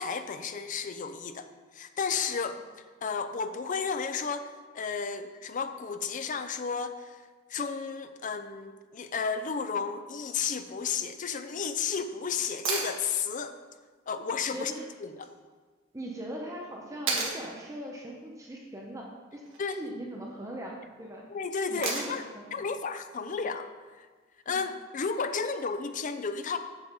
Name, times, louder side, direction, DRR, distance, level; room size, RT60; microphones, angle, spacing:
voice 1, 0.0-1.5 1.7-2.6 3.0-7.2 7.5-13.5 14.1-14.7 15.0-15.3 19.6-19.8 21.3-22.2 22.5-23.7 24.0-24.1 24.5-26.6, left 5 dB, 40° left, 9 dB, 0.5 m, -32 dB
sound 1, 12.6-12.9 15.2-15.3 17.1-17.4 19.4-19.8 21.8-22.3 24.4-24.5, right 4 dB, 80° right, 1.6 m, -31 dB
voice 2, 14.5-14.8 15.9-19.0 19.3-19.4 19.7-21.2 21.7-22.7 23.2-23.3 24.5-24.6, right 1 dB, 15° right, -1 dB, 0.8 m, -40 dB
7.9 x 7.0 x 4.0 m, 1.4 s
head